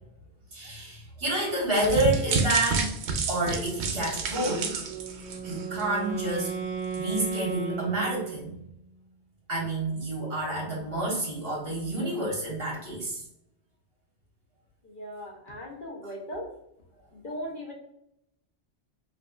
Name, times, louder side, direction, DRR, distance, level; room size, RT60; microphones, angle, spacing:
voice 1, 0.5-2.9 3.3-4.7 5.4-6.5 7.0-8.5 9.5-13.2 16.0-16.1, right 1 dB, 55° right, -3 dB, 1.5 m, -29 dB
sound 1, 1.7-6.0 6.3-6.5 6.9-7.0, right 4 dB, 70° right, 0.9 m, -30 dB
Wind instrument woodwind instrument, 4.8-8.8, right 6 dB, 10° left, 1.5 m, -35 dB
voice 2, 14.8-16.5 17.1-17.7, equal, 50° left, -1 dB, 0.9 m, -38 dB
5.1 x 2.7 x 2.3 m, 0.76 s
omnidirectional pair, 1.2 m